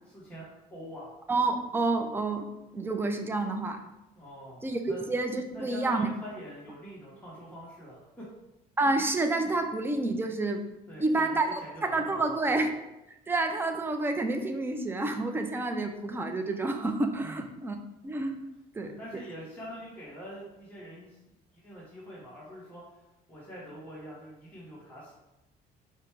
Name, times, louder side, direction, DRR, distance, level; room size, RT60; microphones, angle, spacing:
voice 1, 0.0-1.1 4.1-5.0 5.5-8.3 10.9-12.4 17.2-17.4 18.8-21.2 21.5-25.1, equal, 10° left, -7 dB, 1.2 m, -45 dB
voice 2, 1.3-2.5 2.7-3.8 4.6-4.8 5.1-6.1 8.8-10.6 11.0-12.7 13.3-17.8 18.0-18.5 18.7-18.9, right 2 dB, 15° right, 5 dB, 0.5 m, -29 dB
5.0 x 2.2 x 4.6 m, 0.94 s
cardioid pair, 110°, 17 cm